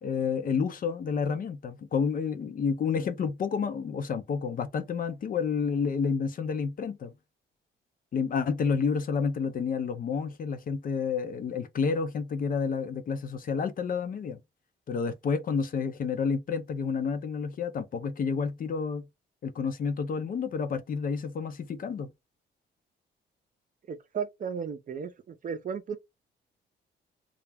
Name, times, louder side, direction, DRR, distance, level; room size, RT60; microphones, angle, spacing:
voice 1, 0.0-7.1 8.1-14.4 14.9-19.1 19.4-22.1, left 5 dB, 45° left, 0.5 m, -30 dB
voice 2, 23.9-26.0, right 6 dB, 40° right, 0.5 m, -35 dB
2.3 x 2.0 x 3.3 m
cardioid pair, 90°, 20 cm